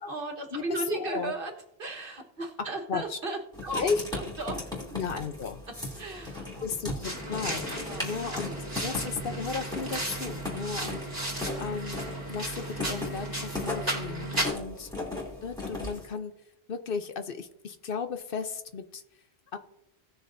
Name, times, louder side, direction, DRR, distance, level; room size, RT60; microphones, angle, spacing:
voice 1, 0.1-4.8 5.9-6.7 7.7-8.2 8.4-8.6 14.4-14.5, right 2 dB, 60° right, 4 dB, 1.5 m, -36 dB
voice 2, 0.9-1.3 2.9-3.2 3.8-4.0 4.9-5.6 6.6-8.5 8.8-14.9 15.4-16.3 16.7-19.0 19.5-19.6, left 5 dB, 60° left, 9 dB, 0.9 m, -35 dB
Writing, 3.5-16.1, left 2 dB, 5° left, 2.8 m, -37 dB
sound 1, 7.0-14.5, right 1 dB, 20° right, 2.6 m, -35 dB
18.0 x 6.6 x 2.6 m, 0.79 s
omnidirectional pair, 1.1 m